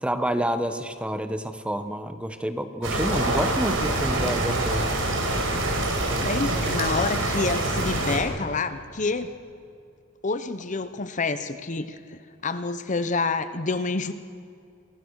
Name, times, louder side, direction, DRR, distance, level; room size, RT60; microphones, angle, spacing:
voice 1, 0.0-5.0, right 1 dB, 5° right, 9 dB, 1.2 m, -28 dB
sound 1, 2.8-8.2, right 2 dB, 85° right, 5.0 m, -25 dB
voice 2, 5.9-9.3 10.2-14.1, left 3 dB, 40° left, 11 dB, 0.9 m, -28 dB
28.5 x 24.0 x 6.4 m, 2.4 s
head